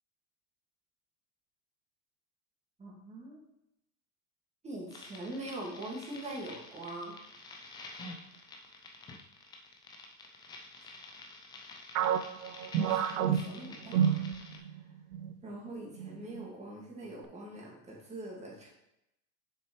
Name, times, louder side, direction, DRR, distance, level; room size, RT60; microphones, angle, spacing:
voice 1, 2.8-3.4 4.6-7.2 13.2-14.2 15.4-18.7, right 1 dB, 15° right, -2 dB, 1.9 m, -43 dB
sound 1, 4.9-14.6, left 3 dB, 10° left, 0.3 m, -49 dB
sound 2, 11.9-14.8 15.1-15.3 16.0-16.4, right 9 dB, 70° right, 0.7 m, -30 dB
7.1 x 6.1 x 3.1 m, 0.82 s
supercardioid pair, 135°, 44 cm